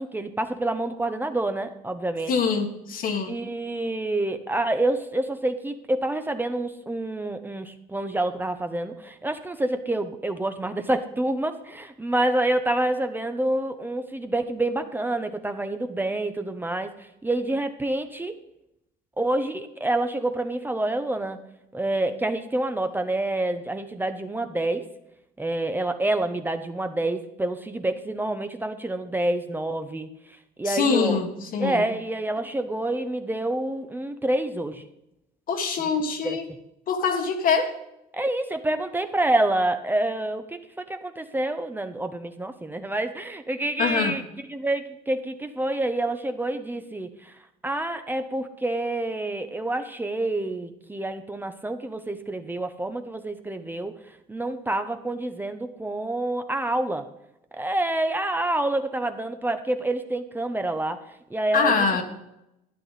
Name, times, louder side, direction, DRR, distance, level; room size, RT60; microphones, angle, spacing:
voice 1, 0.0-2.3 3.3-18.3 19.2-21.4 21.7-24.8 25.4-30.1 30.6-31.2 31.6-34.8 36.2-36.4 38.1-44.2 44.5-47.4 47.6-53.9 54.3-57.1 57.6-61.0 61.3-61.9, right 2 dB, 10° right, 7 dB, 0.8 m, -27 dB
voice 2, 2.3-3.4 30.6-31.9 35.5-36.4 36.9-37.7 43.8-44.2 61.5-62.0, left 5 dB, 55° left, 6 dB, 1.6 m, -24 dB
12.0 x 9.8 x 4.1 m, 0.85 s
cardioid pair, 110°, 17 cm